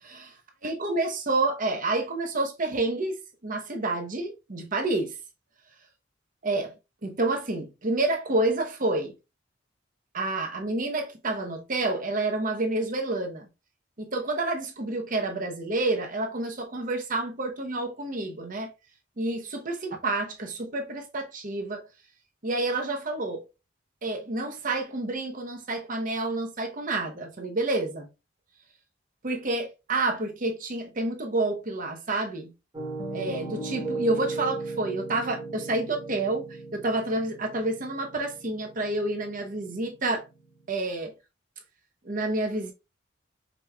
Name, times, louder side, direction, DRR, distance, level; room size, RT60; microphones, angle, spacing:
voice 1, 0.6-3.2 3.4-5.1 6.4-6.7 7.0-9.1 10.1-13.4 14.0-18.7 19.2-21.8 22.4-23.4 24.0-28.1 29.2-32.5 33.1-40.2 40.7-41.1 42.0-42.7, right 2 dB, 45° right, 0.9 m, -29 dB
Piano, 32.7-40.6, right 3 dB, 20° right, 1.3 m, -37 dB
5.0 x 3.1 x 2.3 m
head